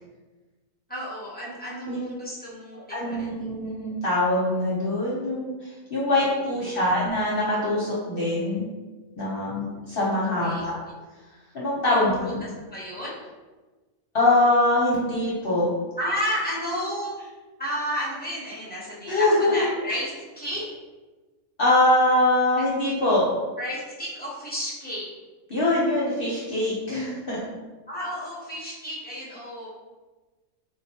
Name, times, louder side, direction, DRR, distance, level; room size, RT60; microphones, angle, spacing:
voice 1, 0.9-2.8 3.0-3.5 6.1-6.9 10.4-11.0 11.9-13.2 16.0-17.3 17.6-20.1 20.4-20.7 23.6-25.1 27.9-29.7, equal, 10° left, -7 dB, 0.6 m, -32 dB
voice 2, 2.9-5.5 5.9-8.6 9.2-10.7 11.5-12.1 14.1-15.7 19.1-19.6 21.6-23.2 25.5-27.4, left 1 dB, 45° left, -7 dB, 0.9 m, -23 dB
4.3 x 2.4 x 2.8 m, 1.3 s
omnidirectional pair, 1.5 m